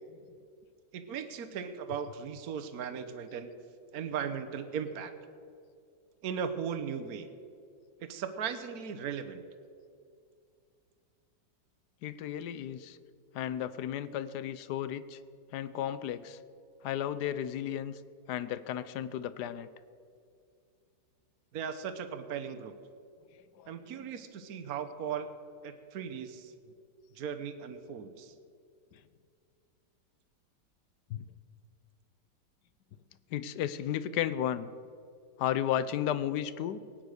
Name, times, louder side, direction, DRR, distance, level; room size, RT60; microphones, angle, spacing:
voice 1, 0.9-3.5 3.9-5.1 6.2-7.3 8.0-9.4 21.5-22.7 23.7-25.3 25.6-26.7 27.1-28.3, right 7 dB, 55° right, 9 dB, 1.4 m, -37 dB
voice 2, 12.0-13.0 13.3-15.2 15.5-16.4 16.8-18.0 18.3-19.7 23.6-23.7 28.9-29.0 31.1-31.2 33.3-34.7 35.4-36.8, left 10 dB, 70° left, 15 dB, 1.2 m, -34 dB
18.0 x 9.5 x 6.6 m, 2.3 s
omnidirectional pair, 2.0 m